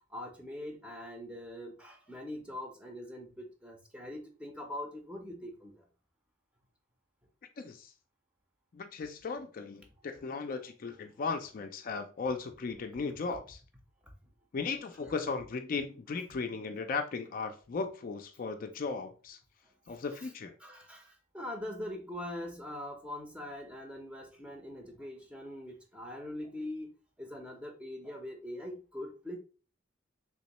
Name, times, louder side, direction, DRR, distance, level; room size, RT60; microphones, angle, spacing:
voice 1, 0.1-5.8 14.0-14.1 15.0-15.1 20.2-20.3 20.6-29.4, left 1 dB, 5° right, 0.6 m, -42 dB
voice 2, 7.6-7.9 8.7-13.6 14.5-19.4 19.9-20.5, left 4 dB, 45° left, 0.4 m, -36 dB
3.5 x 3.0 x 2.9 m
head